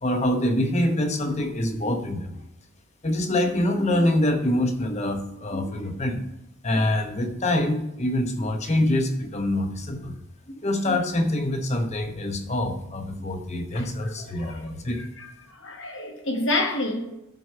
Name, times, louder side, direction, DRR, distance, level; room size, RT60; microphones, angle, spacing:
voice 1, 0.0-2.4 3.0-6.3 6.6-10.2 10.5-15.0, left 1 dB, 30° left, 0.9 m, -25 dB
voice 2, 13.7-17.1, left 2 dB, 60° left, 1.4 m, -30 dB
11.0 x 4.7 x 5.5 m
head